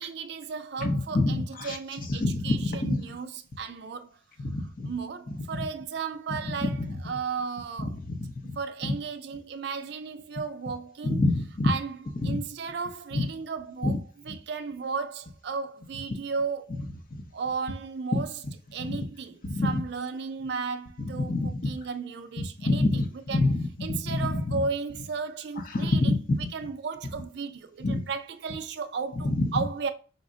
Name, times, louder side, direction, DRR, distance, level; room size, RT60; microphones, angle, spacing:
voice 1, 0.0-4.2 4.8-6.8 7.0-8.0 8.4-11.2 11.6-12.0 12.2-14.0 14.3-16.8 17.3-18.3 18.7-23.5 23.8-26.1 26.5-29.9, right 5 dB, 55° right, 0.4 m, -34 dB
voice 2, 0.8-1.8 2.2-3.0 4.4-4.9 6.3-7.0 7.8-8.6 8.8-8.9 11.0-11.7 12.2-12.4 13.1-13.3 13.8-14.0 14.3-14.4 17.1-17.2 18.1-18.2 18.8-19.0 19.4-19.8 21.0-21.8 22.4-24.6 25.7-26.5 27.8-28.0 29.2-29.6, left 2 dB, 45° left, 0.6 m, -27 dB
5.2 x 2.1 x 3.6 m
head